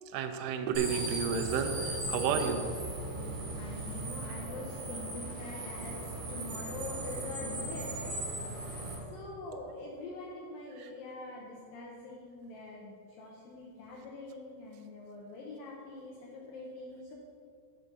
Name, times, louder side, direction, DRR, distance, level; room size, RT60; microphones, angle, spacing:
voice 1, 0.1-2.6 10.8-10.9, right 6 dB, 80° right, 5 dB, 2.6 m, -31 dB
sound 1, 0.7-8.9, right 2 dB, 50° right, 2.2 m, -38 dB
voice 2, 3.1-8.2 9.1-17.1, left 2 dB, 85° left, -3 dB, 2.0 m, -44 dB
6.1 x 5.6 x 6.5 m, 2.4 s
omnidirectional pair, 5.2 m